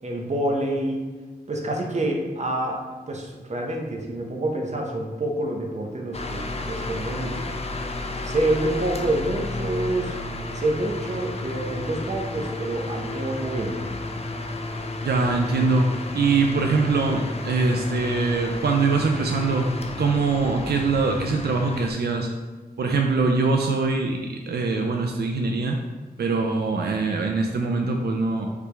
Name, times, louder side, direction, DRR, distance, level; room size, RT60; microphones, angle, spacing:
voice 1, 0.0-1.0 1.5-2.8 3.1-7.6 8.2-10.2 10.5-13.9, right 1 dB, 45° right, 1 dB, 0.7 m, -27 dB
sound 1, 6.1-21.9, left 2 dB, 40° left, 0.4 m, -32 dB
voice 2, 15.0-19.7 20.0-22.3 22.8-25.8 26.2-28.5, right 4 dB, 80° right, 3 dB, 0.4 m, -23 dB
4.9 x 3.3 x 3.3 m, 1.3 s
wide cardioid pair, 90°, 17 cm